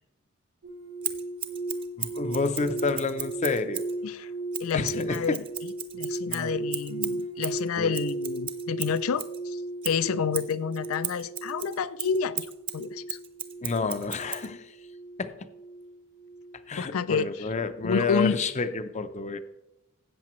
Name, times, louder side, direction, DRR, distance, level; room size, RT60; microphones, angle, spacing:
sound 1, 0.6-18.0 18.2-18.6, right 2 dB, 75° right, 1.2 m, -37 dB
Scissors, 1.0-4.0 4.5-9.4 9.8-14.5, right 8 dB, 25° right, 0.7 m, -36 dB
voice 1, 2.0-3.8 4.7-5.4 6.3-6.6 7.8-8.0 13.6-14.8 15.2-15.5 16.7-19.4, left 3 dB, 35° left, 11 dB, 0.5 m, -29 dB
voice 2, 4.6-5.4 5.9-9.6 9.8-12.5 12.7-13.2 16.8-17.3 17.8-18.4, left 6 dB, 85° left, 17 dB, 0.4 m, -29 dB
13.5 x 8.4 x 3.0 m, 0.93 s
head